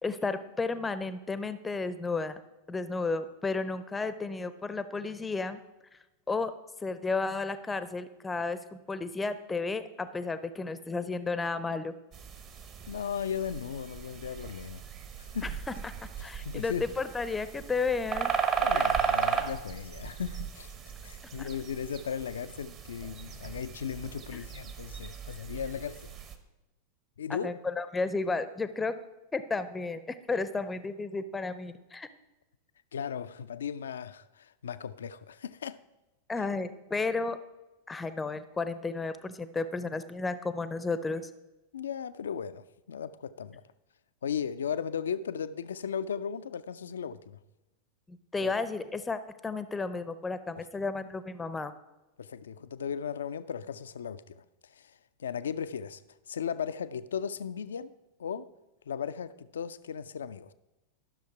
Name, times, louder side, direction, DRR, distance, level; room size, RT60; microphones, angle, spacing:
voice 1, 0.0-2.4 2.7-5.6 6.3-6.5 6.8-11.9 15.4-15.5 15.8-15.9 16.2-18.3 18.7-18.9 21.4-21.5 27.3-28.9 29.3-32.1 36.3-37.4 37.9-41.3 48.1-51.7, left 3 dB, 10° left, 0.6 m, -33 dB
sound 1, 12.1-26.4, right 7 dB, 35° right, 1.0 m, -35 dB
voice 2, 12.9-14.8 15.2-15.5 16.4-16.9 18.6-20.7 21.0-26.1 27.2-27.5 32.9-35.8 41.7-43.6 44.2-47.4 48.4-48.5 50.6-50.7 52.2-56.0 56.3-57.9 58.2-58.5 58.9-60.5, left 7 dB, 65° left, 0.4 m, -36 dB
12.5 x 6.4 x 4.7 m
figure-of-eight pair, 90°, 0 cm